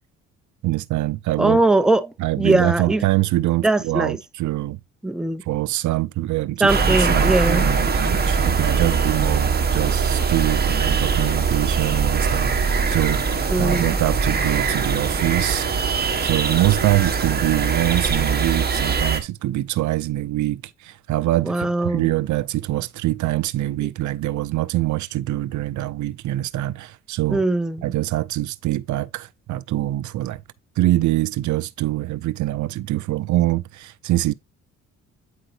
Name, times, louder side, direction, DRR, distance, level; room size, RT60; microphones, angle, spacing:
voice 1, 0.6-1.6 2.2-4.8 5.5-15.7 16.2-27.4 27.8-30.4 30.8-34.3, right 16 dB, 70° right, 0.6 m, -24 dB
voice 2, 1.4-2.1 2.4-3.0 3.6-4.2 5.0-5.4 6.6-7.7 13.5-13.9 21.5-22.0 27.3-27.8, right 2 dB, ahead, 0.6 m, -20 dB
sound 1, 6.7-19.2, right 5 dB, 30° right, 1.6 m, -21 dB
8.9 x 5.0 x 2.8 m
cardioid pair, 90°, 30 cm